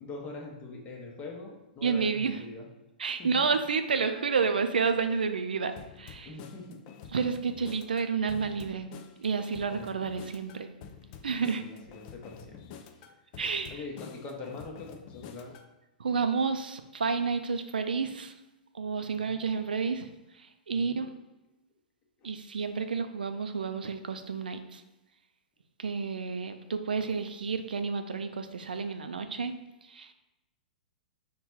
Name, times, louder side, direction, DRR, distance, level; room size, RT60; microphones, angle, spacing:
voice 1, 0.0-2.7 3.2-3.4 6.2-6.8 9.7-9.9 11.6-12.6 13.7-15.5 19.2-19.5 20.7-21.0 22.2-22.3, left 3 dB, 30° left, 1 dB, 0.8 m, -43 dB
voice 2, 1.8-2.4 3.0-5.7 6.0-6.3 7.1-8.9 9.2-10.7 11.2-11.6 13.4-13.8 16.0-18.3 18.7-20.1 20.4-21.1 22.2-24.8 25.8-29.5 29.8-30.1, right 5 dB, 85° right, 8 dB, 0.3 m, -30 dB
sound 1, 5.8-15.7, left 7 dB, 45° left, 0.4 m, -48 dB
4.0 x 2.2 x 4.4 m, 0.96 s
hypercardioid pair, 115°, 5 cm